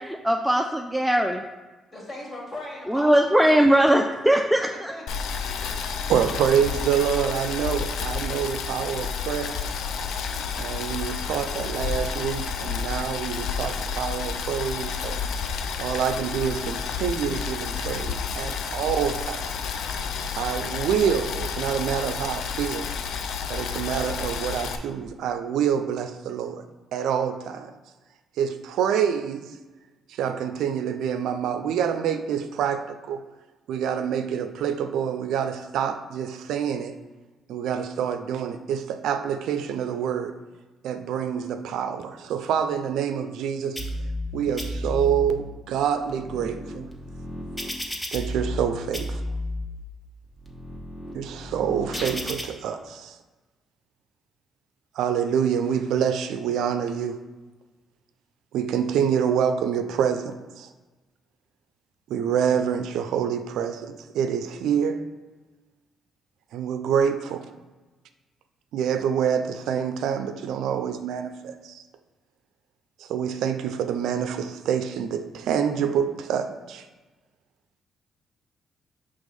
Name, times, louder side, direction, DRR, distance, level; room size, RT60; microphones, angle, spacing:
voice 1, 0.0-1.4 2.9-4.9, right 1 dB, 5° right, 0.3 m, -20 dB
voice 2, 1.9-4.0 4.6-5.5, left 1 dB, 35° left, 2.0 m, -39 dB
Boiling, 5.1-24.8, left 6 dB, 75° left, 0.4 m, -30 dB
voice 3, 5.6-9.7 10.6-15.2 15.8-19.6 20.4-22.9 23.5-27.7 28.4-29.6 30.1-33.2 33.7-37.0 37.5-40.4 40.8-43.9 44.3-46.9 48.1-49.2 51.1-53.2 55.0-57.2 58.5-60.7 62.1-65.1 66.5-67.5 68.7-71.8 73.0-76.9, right 8 dB, 85° right, 0.4 m, -27 dB
sound 1, 43.8-44.3 44.6-45.3 45.9-48.7 48.9-49.7 50.2-52.4, left 1 dB, 15° left, 0.9 m, -33 dB
5.3 x 3.4 x 5.3 m
cardioid pair, 90°, 0 cm